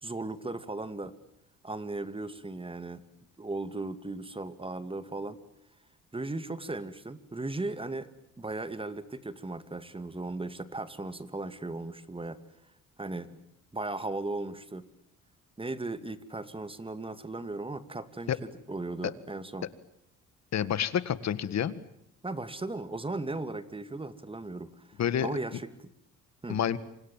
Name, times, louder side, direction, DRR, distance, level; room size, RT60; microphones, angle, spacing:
voice 1, 0.0-1.1 1.6-3.0 3.4-5.4 6.1-8.1 8.4-12.4 13.0-13.4 13.7-14.8 15.6-19.7 22.2-24.7 25.2-25.7 26.4-26.6, right 2 dB, 20° right, 12 dB, 2.4 m, -37 dB
voice 2, 20.5-21.8 25.0-25.3 26.5-26.8, left 9 dB, 60° left, 16 dB, 1.9 m, -28 dB
28.5 x 25.5 x 7.5 m, 0.77 s
cardioid pair, 90°, 30 cm